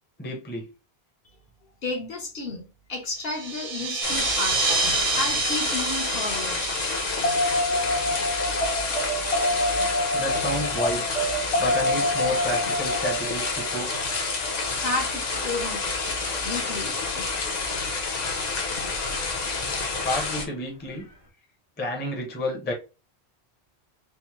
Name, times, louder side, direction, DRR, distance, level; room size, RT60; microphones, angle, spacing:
voice 1, 0.2-0.7 10.1-11.1 11.6-13.9 20.0-21.1 21.8-22.7, left 1 dB, 10° left, 0.6 m, -30 dB
voice 2, 1.8-4.6 5.1-6.6 14.7-16.0 16.4-16.9, left 3 dB, 60° left, 1.1 m, -32 dB
sound 1, 3.2-9.3, right 4 dB, 60° right, 0.8 m, -29 dB
sound 2, 4.0-20.5, left 4 dB, 45° left, 0.7 m, -29 dB
sound 3, 7.2-15.6 18.3-18.4, left 1 dB, 90° left, 1.4 m, -27 dB
3.4 x 2.1 x 2.9 m
omnidirectional pair, 1.1 m